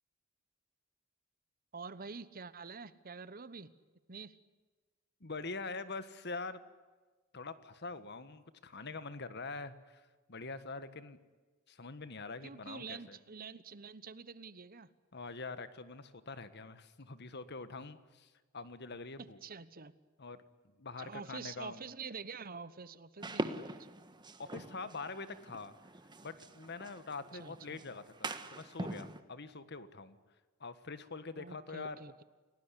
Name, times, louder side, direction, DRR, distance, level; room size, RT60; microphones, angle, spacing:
voice 1, 1.7-3.7 4.1-4.4 12.4-14.9 19.4-20.0 21.0-23.8 27.3-27.8 31.4-32.2, right 5 dB, 45° right, 15 dB, 1.1 m, -47 dB
voice 2, 5.2-6.6 7.3-11.2 11.7-13.2 15.1-19.4 20.2-20.4 20.8-21.8 24.4-25.7 26.2-30.2 30.6-32.0, left 3 dB, 55° left, 12 dB, 1.6 m, -44 dB
sound 1, 23.2-29.2, right 2 dB, 20° right, 1.5 m, -43 dB
29.0 x 18.5 x 10.0 m, 1.3 s
head